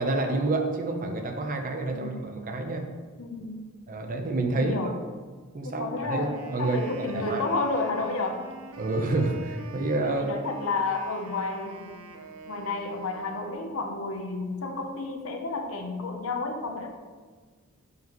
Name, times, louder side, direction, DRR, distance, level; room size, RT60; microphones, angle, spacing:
voice 1, 0.0-2.9 3.9-4.9 5.5-7.4 8.8-10.3, right 2 dB, 40° right, 4 dB, 0.7 m, -28 dB
voice 2, 1.9-2.3 3.2-3.7 4.5-5.0 5.6-8.5 10.0-11.9 12.5-16.9, left 3 dB, 75° left, 4 dB, 0.7 m, -31 dB
Wind instrument woodwind instrument, 6.1-13.8, right 3 dB, 90° right, 0.7 m, -45 dB
7.8 x 5.3 x 3.0 m, 1.4 s
head